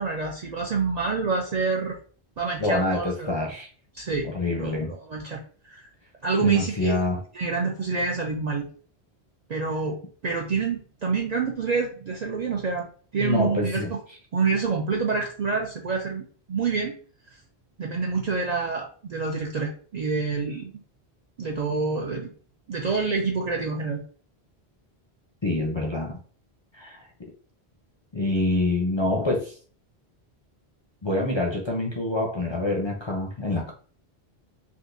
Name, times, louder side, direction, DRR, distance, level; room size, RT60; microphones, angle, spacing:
voice 1, 0.0-2.0 2.4-3.3 3.9-4.3 4.6-5.9 6.2-7.0 7.3-8.7 9.5-10.0 10.2-12.9 13.1-14.0 14.3-16.9 17.8-20.7 21.4-22.3 22.7-24.0, right 4 dB, 55° right, 0.5 m, -27 dB
voice 2, 2.6-3.7 4.2-4.9 6.4-7.2 13.2-13.9 25.4-26.2 26.7-27.1 28.1-29.6 31.0-33.7, left 2 dB, 35° left, 0.5 m, -26 dB
3.6 x 2.5 x 2.5 m
omnidirectional pair, 1.1 m